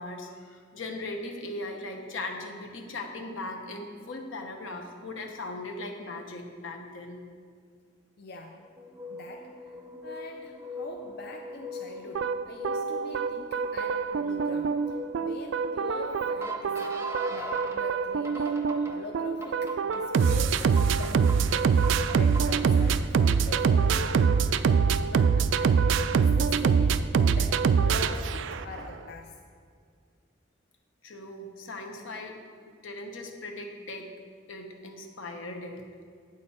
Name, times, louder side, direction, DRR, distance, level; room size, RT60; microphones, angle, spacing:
voice 1, 0.0-7.2 31.0-32.4 32.8-34.1 34.5-35.8, left 2 dB, 85° left, 3 dB, 1.0 m, -38 dB
voice 2, 8.2-8.6 9.1-9.8 10.0-14.8 15.2-17.0 17.3-21.8 22.1-25.9 26.1-29.4, left 2 dB, 55° left, 2 dB, 0.5 m, -43 dB
sound 1, 8.8-17.8 18.2-18.9 19.4-20.2 20.8-21.4 21.8-22.6, equal, 15° right, 0.6 m, -40 dB
sound 2, 12.1-28.8, right 5 dB, 70° right, 0.3 m, -25 dB
8.6 x 6.4 x 4.2 m, 2.1 s
head